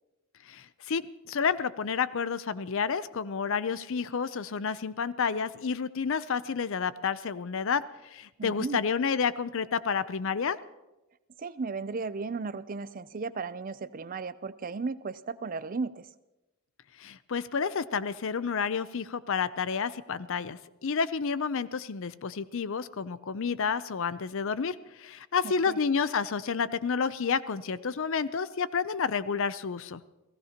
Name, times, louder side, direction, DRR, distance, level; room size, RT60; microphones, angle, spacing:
voice 1, 0.5-10.6 17.0-30.0, left 6 dB, 60° left, 16 dB, 0.5 m, -30 dB
voice 2, 8.4-8.8 11.4-16.1 25.4-25.8, right 4 dB, 40° right, 15 dB, 0.5 m, -35 dB
29.5 x 16.5 x 2.9 m, 1.0 s
head